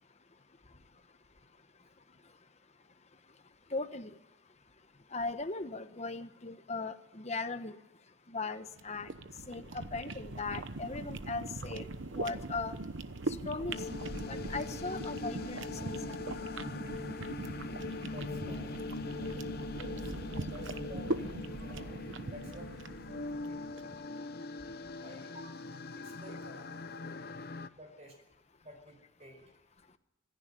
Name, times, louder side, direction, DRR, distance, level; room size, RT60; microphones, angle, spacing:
voice 1, 3.7-4.2 5.1-7.7 8.3-9.1 9.5-12.8 13.4-13.8 14.2-16.2, left 3 dB, 35° left, 1.1 m, -38 dB
sound 1, 8.7-24.0, right 2 dB, 65° right, 1.0 m, -41 dB
sound 2, 13.7-27.7, left 3 dB, 50° left, 0.8 m, -41 dB
voice 2, 18.0-18.8 20.0-22.0 22.2-22.7 23.4-23.7 24.6-25.6 25.9-26.8 27.7-28.2 28.6-29.4, equal, 35° right, 4.9 m, -52 dB
26.0 x 10.5 x 10.0 m
head